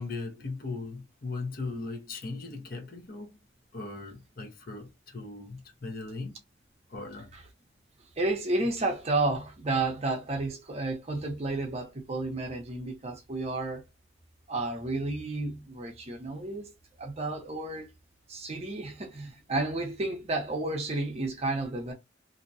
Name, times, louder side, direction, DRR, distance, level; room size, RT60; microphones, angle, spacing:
voice 1, 0.0-3.4 3.7-6.4 6.9-7.3, left 3 dB, 50° left, 0.7 m, -38 dB
voice 2, 8.2-13.8 14.5-16.7 17.0-17.9 18.3-21.9, right 2 dB, 35° right, 0.6 m, -31 dB
2.6 x 2.1 x 2.6 m
head